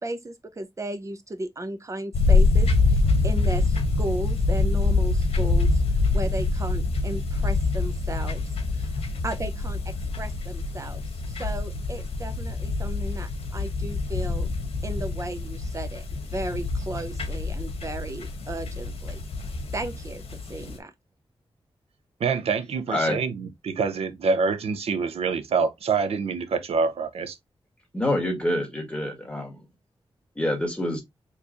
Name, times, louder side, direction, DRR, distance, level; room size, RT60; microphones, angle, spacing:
voice 1, 0.0-3.0 3.2-5.8 6.1-8.9 9.2-14.5 14.8-19.2 19.7-20.9, right 1 dB, 30° right, 0.8 m, -35 dB
sound 1, 2.1-20.8, left 3 dB, 75° left, 1.0 m, -25 dB
voice 2, 22.2-27.4, right 5 dB, 85° right, 0.6 m, -26 dB
voice 3, 22.9-23.2 27.9-29.6 30.4-31.0, left 1 dB, 10° left, 1.7 m, -26 dB
4.5 x 3.1 x 2.5 m
wide cardioid pair, 95°, 10 cm